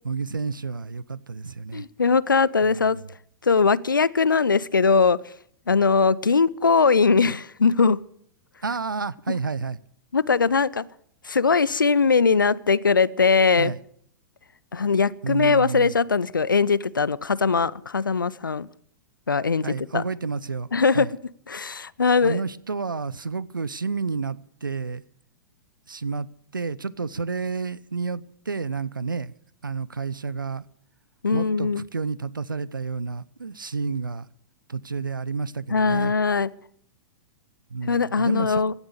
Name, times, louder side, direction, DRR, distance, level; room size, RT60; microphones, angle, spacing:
voice 1, 0.0-1.9 2.6-3.1 8.6-9.8 13.6-13.8 15.2-15.9 19.6-20.7 20.9-21.1 22.2-25.0 25.9-26.3 26.5-29.3 29.6-30.6 31.3-34.3 34.7-36.1 37.7-38.6, right 4 dB, 85° right, 0.7 m, -30 dB
voice 2, 1.7-3.0 3.4-5.2 5.7-8.0 10.1-10.8 11.2-13.7 14.7-18.7 19.3-19.7 19.9-20.0 20.7-21.1 21.5-22.4 31.2-31.8 35.7-36.5 37.8-38.7, left 5 dB, 80° left, 0.6 m, -20 dB
16.5 x 11.5 x 6.7 m
figure-of-eight pair, 105°, 11 cm